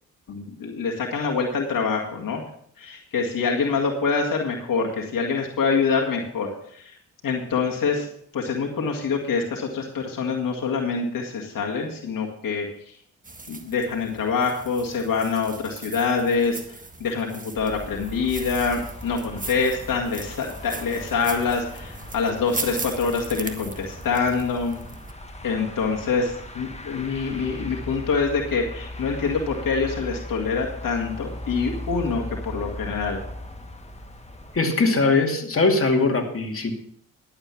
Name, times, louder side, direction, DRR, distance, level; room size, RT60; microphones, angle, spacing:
voice 1, 0.3-2.4 2.8-7.0 7.2-12.7 13.5-24.8 25.4-33.2, left 5 dB, 65° left, 0 dB, 2.0 m, -25 dB
sound 1, 13.2-25.1, right 2 dB, 20° right, 1.6 m, -39 dB
sound 2, 17.6-34.6, left 1 dB, 20° left, 1.9 m, -38 dB
voice 2, 34.5-36.7, left 3 dB, 35° left, 2 dB, 2.4 m, -21 dB
11.5 x 7.9 x 6.0 m, 0.64 s
hypercardioid pair, 45°, 36 cm